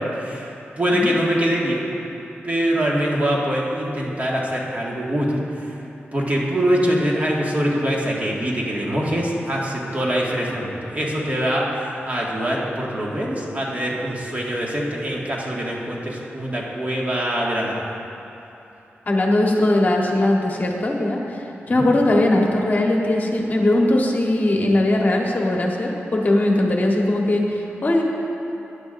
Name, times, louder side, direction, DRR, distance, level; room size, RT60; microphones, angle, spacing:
voice 1, 0.0-1.9 2.4-5.8 6.1-18.0 21.8-21.9, equal, 35° right, -4 dB, 1.9 m, -23 dB
voice 2, 19.1-21.4 21.7-28.0, left 1 dB, 40° left, -1 dB, 1.3 m, -19 dB
17.5 x 10.5 x 2.6 m, 3.0 s
wide cardioid pair, 95°, 4 cm